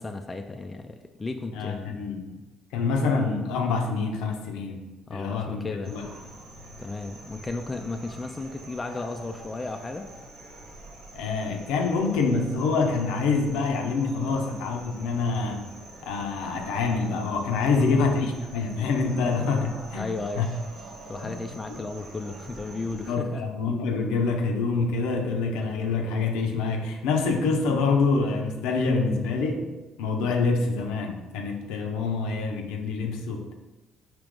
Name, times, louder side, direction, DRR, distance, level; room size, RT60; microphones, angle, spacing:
voice 1, 0.0-2.1 5.1-5.9 6.8-10.1 14.3-14.4 17.8-18.0 19.9-20.5 21.1-23.4, left 3 dB, 25° left, 5 dB, 0.3 m, -34 dB
voice 2, 1.5-2.2 2.7-4.8 5.1-6.0 11.1-15.8 16.0-20.5 21.2-21.3 21.7-21.8 23.1-29.7 30.0-33.5, left 4 dB, 85° left, 3 dB, 0.6 m, -26 dB
sound 1, 5.8-23.1, right 2 dB, 75° right, 1.3 m, -45 dB
5.0 x 2.9 x 3.6 m, 1.2 s
supercardioid pair, 75°, 0 cm